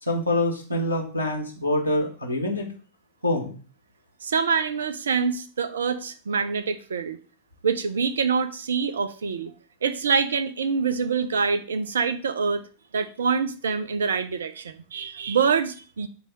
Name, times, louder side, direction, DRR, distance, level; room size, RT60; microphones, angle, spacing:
voice 1, 0.0-2.7 3.2-3.5, left 1 dB, 85° right, 2 dB, 1.5 m, -25 dB
voice 2, 4.2-7.2 7.6-9.5 9.8-12.6 12.9-16.1, right 5 dB, 65° right, 10 dB, 0.8 m, -25 dB
8.0 x 3.5 x 6.2 m, 0.37 s
figure-of-eight pair, 90°, 0 cm